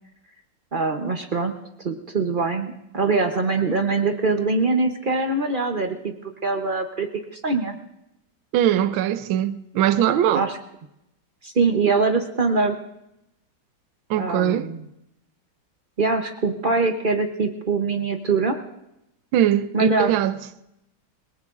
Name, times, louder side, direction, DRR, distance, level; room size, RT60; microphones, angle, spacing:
voice 1, 0.7-1.5 1.8-6.1 6.4-7.8 10.3-10.6 11.4-12.8 14.2-14.8 16.0-18.6 19.7-20.1, right 3 dB, 55° right, 0.5 m, -23 dB
voice 2, 8.5-10.5 14.1-14.7 19.3-20.4, right 11 dB, 75° right, 1.4 m, -21 dB
28.5 x 18.0 x 2.5 m
omnidirectional pair, 2.3 m